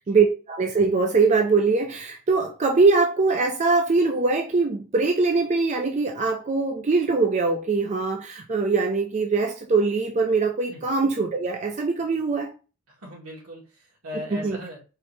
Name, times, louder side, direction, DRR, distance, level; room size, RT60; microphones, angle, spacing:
voice 1, 0.1-12.5 14.3-14.6, right 4 dB, 35° right, 0.4 m, -22 dB
voice 2, 12.9-14.8, left 1 dB, 80° right, 2.1 m, -38 dB
4.5 x 2.8 x 3.3 m
head